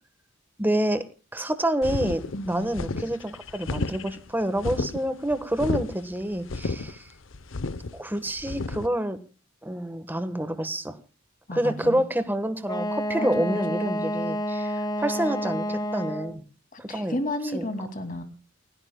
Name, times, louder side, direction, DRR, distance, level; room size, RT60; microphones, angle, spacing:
voice 1, 0.6-1.0 1.3-2.2 2.5-7.0 7.9-9.2 9.6-11.0 11.5-16.4 16.8-17.2 17.5-17.6, right 1 dB, 10° right, 10 dB, 1.2 m, -28 dB
sound 1, 1.8-8.9, left 3 dB, 65° left, 0.8 m, -32 dB
voice 2, 2.3-2.7 11.5-12.0 13.2-13.6 16.7-18.2, left 1 dB, 40° left, 7 dB, 2.4 m, -32 dB
Wind instrument woodwind instrument, 12.6-16.4, equal, 20° left, 1.3 m, -29 dB
29.0 x 17.0 x 2.2 m, 0.33 s
head